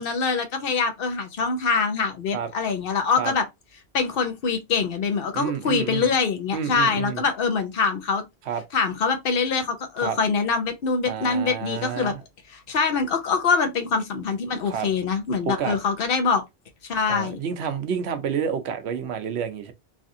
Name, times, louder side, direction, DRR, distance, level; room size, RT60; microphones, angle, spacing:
voice 1, 0.0-3.4 3.9-8.2 8.7-12.1 12.5-16.4 16.8-17.4, left 5 dB, 65° left, 0.9 m, -24 dB
voice 2, 5.3-6.1 6.5-7.2 8.5-8.6 10.0-10.2 11.1-12.2 14.7-14.9 15.5-15.8 17.1-19.7, right 7 dB, 90° right, 0.9 m, -29 dB
3.3 x 2.5 x 2.6 m
omnidirectional pair, 1.1 m